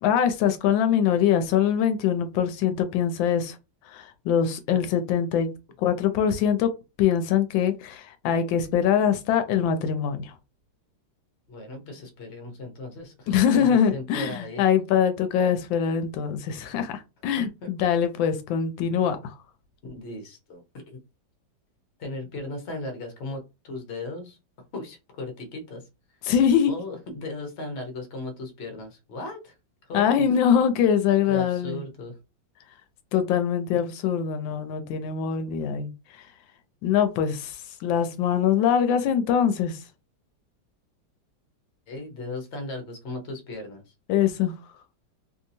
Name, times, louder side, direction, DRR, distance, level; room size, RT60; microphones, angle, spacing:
voice 1, 0.0-3.6 3.9-5.5 5.8-6.7 7.0-10.3 13.3-19.3 26.3-26.7 29.9-31.8 33.1-35.9 36.8-39.8 44.1-44.5, left 8 dB, 85° left, 1.3 m, -23 dB
voice 2, 11.5-14.6 17.4-17.7 19.8-21.0 22.0-24.4 24.7-25.9 26.7-29.6 29.8-30.2 31.2-32.2 41.9-43.9, left 2 dB, 45° left, 0.9 m, -37 dB
3.2 x 2.7 x 2.6 m
omnidirectional pair, 2.0 m